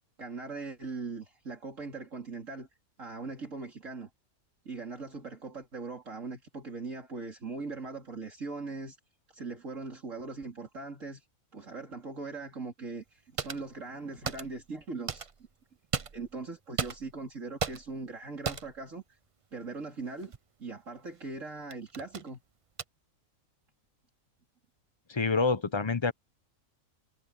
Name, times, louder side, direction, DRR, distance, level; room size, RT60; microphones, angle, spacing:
voice 1, 0.2-2.7 3.0-4.1 4.7-9.0 9.3-11.3 11.5-15.3 16.1-19.2 19.5-20.3 20.6-22.4, right 3 dB, 65° right, 3.7 m, -40 dB
sound 1, 13.4-13.7 14.2-14.7 15.1-15.5 15.9-16.4 16.8-17.3 17.6-18.0 18.4-18.8 20.2-20.4 21.1-21.3 21.7-22.3 22.8-22.9, right 5 dB, 45° right, 0.4 m, -36 dB
voice 2, 25.1-26.1, left 4 dB, 25° left, 0.7 m, -27 dB
omnidirectional pair, 1.5 m